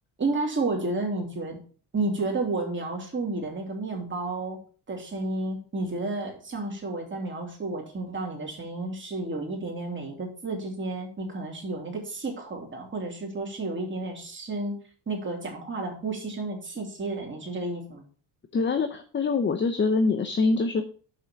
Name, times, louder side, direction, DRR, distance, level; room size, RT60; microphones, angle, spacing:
voice 1, 0.2-1.6 1.9-4.6 4.9-14.8 15.1-18.0, right 2 dB, 25° right, 0 dB, 3.1 m, -31 dB
voice 2, 18.5-20.9, left 4 dB, 25° left, 8 dB, 0.7 m, -24 dB
6.7 x 5.5 x 6.1 m, 0.42 s
cardioid pair, 115°, 45 cm